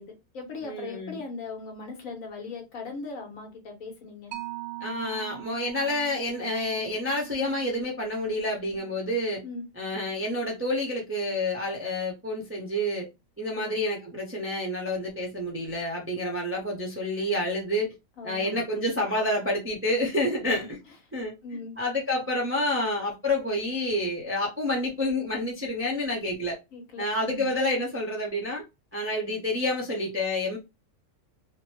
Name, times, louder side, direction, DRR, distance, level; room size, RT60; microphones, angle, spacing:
voice 1, 0.0-4.3 9.4-9.6 13.5-13.8 18.2-18.6 20.4-20.7 21.4-21.8 26.7-27.5, left 3 dB, 65° left, 1.3 m, -39 dB
voice 2, 0.6-1.2 4.8-9.4 9.8-13.1 13.4-17.9 18.2-20.8 21.1-26.6 27.0-28.6 28.9-30.6, left 1 dB, 15° right, 0.4 m, -29 dB
Mallet percussion, 4.3-11.4, right 16 dB, 80° right, 1.0 m, -44 dB
2.8 x 2.2 x 3.0 m
omnidirectional pair, 1.5 m